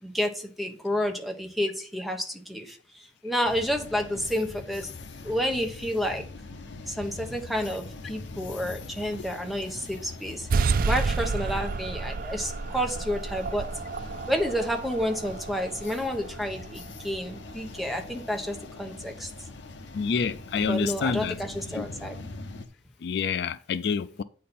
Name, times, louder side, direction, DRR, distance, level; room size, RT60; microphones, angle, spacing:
voice 1, 0.0-4.9 5.2-6.3 6.9-10.5 10.8-13.7 14.3-19.3 20.5-22.1, equal, ahead, 1.1 m, -30 dB
sound 1, 3.4-22.7, left 3 dB, 80° left, 0.8 m, -43 dB
sound 2, 10.5-17.6, right 4 dB, 50° right, 0.4 m, -30 dB
voice 2, 19.9-21.3 21.8-21.9 23.0-24.2, left 6 dB, 65° left, 0.4 m, -28 dB
8.5 x 4.3 x 5.3 m
head